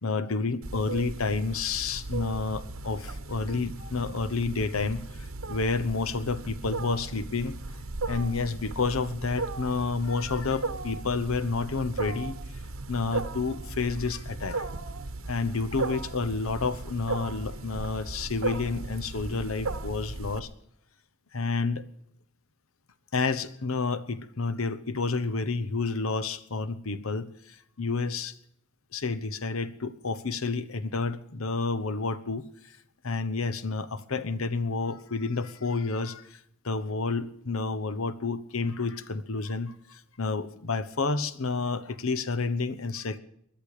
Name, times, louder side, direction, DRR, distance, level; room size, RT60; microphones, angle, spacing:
voice 1, 0.0-5.0 5.5-7.5 8.1-12.3 12.9-14.7 15.3-20.5 21.3-21.8 23.1-27.3 27.8-28.3 28.9-32.4 33.0-36.2 36.6-39.7 40.2-43.2, left 4 dB, 85° left, 13 dB, 1.0 m, -30 dB
Wild animals, 0.6-20.4, right 3 dB, 85° right, 1.1 m, -36 dB
20.5 x 12.0 x 4.9 m, 0.71 s
head